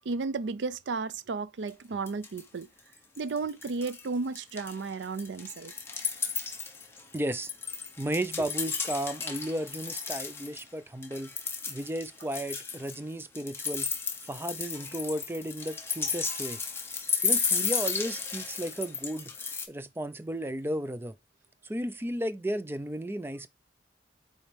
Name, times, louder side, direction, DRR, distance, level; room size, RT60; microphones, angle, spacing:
voice 1, 0.1-2.7 3.2-5.7, right 4 dB, 80° right, 0.5 m, -33 dB
sound 1, 1.7-1.8 2.1-2.6 2.9-4.1 4.3-10.6 11.0-19.6, left 5 dB, 15° left, 1.0 m, -33 dB
voice 2, 7.1-7.5 8.0-11.3 11.7-13.9 14.3-16.6 17.2-19.3 19.7-21.1 21.6-23.5, right 1 dB, 15° right, 0.5 m, -34 dB
7.1 x 4.3 x 3.4 m
head